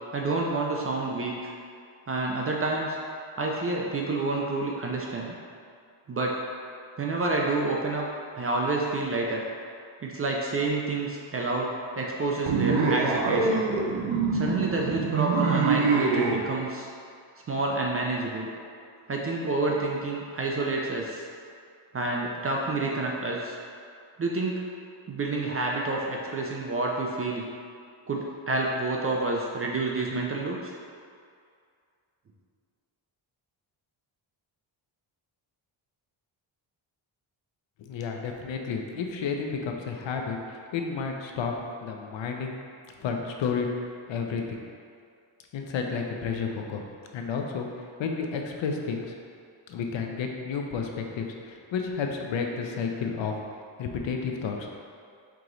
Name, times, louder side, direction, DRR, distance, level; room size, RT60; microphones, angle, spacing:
voice 1, 0.1-1.5 2.1-3.0 3.4-5.3 6.1-6.3 7.0-8.1 8.3-9.4 10.0-13.7 14.3-16.9 17.5-18.5 19.1-21.3 21.9-23.6 24.2-24.6 25.1-27.5 28.1-30.7, right 2 dB, 30° right, -1 dB, 0.4 m, -28 dB
sound 1, 12.5-16.4, right 4 dB, 75° right, 0.7 m, -25 dB
voice 2, 37.8-41.5 41.8-42.6 43.0-43.7 44.1-44.6 45.5-46.8 47.1-47.7 48.0-49.1 49.7-53.3 53.8-54.7, left 5 dB, 65° left, 2 dB, 0.6 m, -31 dB
4.7 x 2.9 x 3.8 m, 2.3 s
wide cardioid pair, 140°, 49 cm